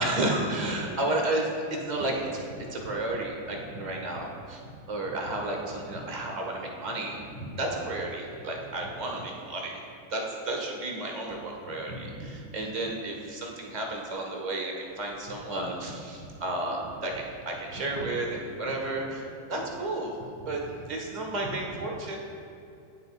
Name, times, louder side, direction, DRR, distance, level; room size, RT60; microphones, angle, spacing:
voice 1, 0.0-4.6 4.9-9.7 10.1-20.1 20.4-20.6 20.9-22.2, right 2 dB, 35° right, 0 dB, 1.4 m, -32 dB
12.0 x 4.0 x 2.5 m, 2.7 s
figure-of-eight pair, 90°, 0 cm